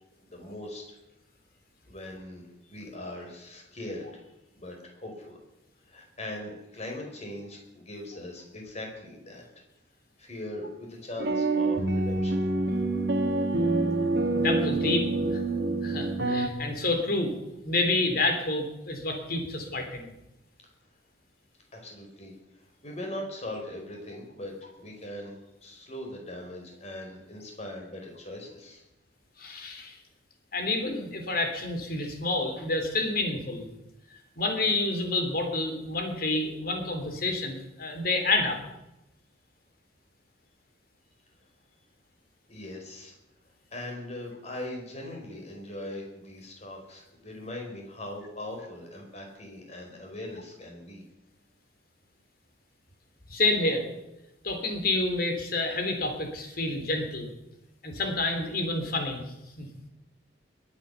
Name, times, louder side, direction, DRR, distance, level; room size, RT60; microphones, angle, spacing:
voice 1, 0.2-0.9 1.9-5.4 5.9-9.4 10.2-12.5 21.7-22.3 22.6-28.8 42.5-43.1 43.7-51.0, left 1 dB, 35° left, 1 dB, 4.8 m, -40 dB
sound 1, 11.2-16.5, right 2 dB, 60° right, 1.7 m, -26 dB
voice 2, 14.4-15.1 15.8-17.3 17.6-20.1 29.4-30.0 30.5-33.7 34.4-38.6 53.3-53.9 54.4-57.3 57.8-59.2 59.6-59.7, left 2 dB, 50° left, 5 dB, 3.3 m, -28 dB
21.5 x 8.9 x 7.0 m, 0.93 s
head